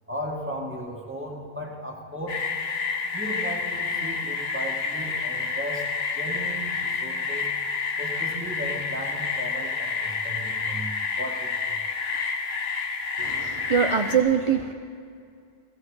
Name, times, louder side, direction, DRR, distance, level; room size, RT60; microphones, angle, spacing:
voice 1, 0.1-2.4 3.1-7.5 8.0-11.8, equal, 10° right, -1 dB, 1.8 m, -36 dB
sound 1, 2.3-14.2, left 5 dB, 65° left, 1.3 m, -29 dB
voice 2, 13.2-14.7, right 7 dB, 35° right, 5 dB, 0.6 m, -23 dB
17.5 x 15.5 x 4.9 m, 2.4 s
omnidirectional pair, 1.1 m